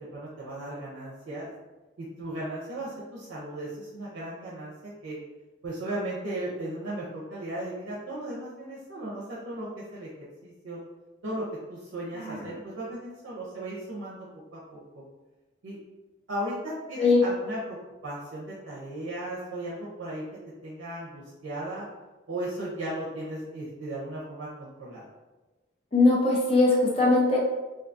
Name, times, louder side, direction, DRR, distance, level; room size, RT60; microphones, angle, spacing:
voice 1, 0.1-1.5 2.0-5.2 5.6-10.1 10.4-10.8 11.2-14.3 14.5-15.0 15.6-15.8 16.3-17.8 18.0-20.2 20.6-21.9 22.3-25.1, right 1 dB, 85° right, -6 dB, 0.5 m, -36 dB
voice 2, 12.2-12.5 17.0-17.2 25.9-27.4, left 3 dB, 30° left, -3 dB, 0.5 m, -21 dB
2.6 x 2.2 x 2.5 m, 1.2 s
head